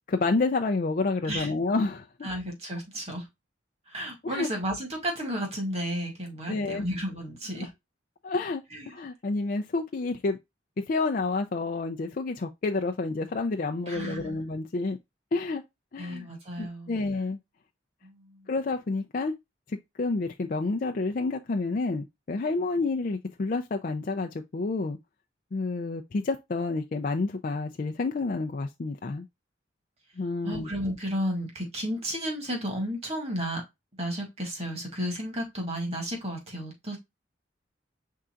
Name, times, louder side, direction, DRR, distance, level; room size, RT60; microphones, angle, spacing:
voice 1, 0.1-2.3 4.2-4.5 6.5-6.9 7.6-7.7 8.2-10.4 10.9-15.0 15.3-15.6 15.9-16.3 16.6-17.4 18.5-19.3 19.7-25.0 25.5-29.3 30.2-30.7, left 3 dB, 45° left, 0.4 m, -29 dB
voice 2, 2.2-3.2 3.9-7.7 8.7-8.9 13.9-14.4 16.0-17.0 18.0-18.5 30.4-33.6 33.9-37.0, equal, 35° right, 1.9 m, -33 dB
5.6 x 3.7 x 2.4 m
head